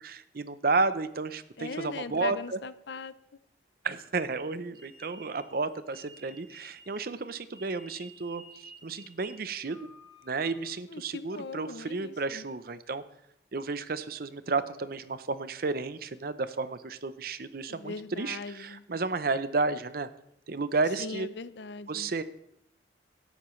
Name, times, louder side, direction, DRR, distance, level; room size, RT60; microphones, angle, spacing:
voice 1, 0.0-2.6 3.8-9.9 10.2-13.0 13.5-20.1 20.5-21.3 21.9-22.2, right 3 dB, 55° right, 13 dB, 0.7 m, -32 dB
voice 2, 1.6-3.1 10.9-12.4 17.7-18.8 21.0-22.1, left 4 dB, 75° left, 14 dB, 0.6 m, -40 dB
sound 1, 4.7-10.7, right 2 dB, 20° right, 2.9 m, -53 dB
17.0 x 12.5 x 3.2 m, 0.78 s
head